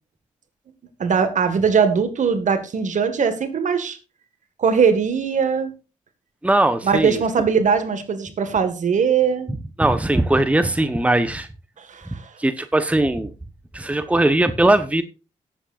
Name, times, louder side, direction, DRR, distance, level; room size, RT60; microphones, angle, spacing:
voice 1, 1.0-4.0 4.6-5.7 6.8-9.5 11.8-12.3, right 6 dB, 55° right, 1.9 m, -20 dB
voice 2, 6.4-7.2 9.8-11.5 12.4-13.3 13.7-15.0, right 1 dB, 10° right, 1.0 m, -19 dB
18.0 x 7.7 x 2.6 m
hypercardioid pair, 45°, 15 cm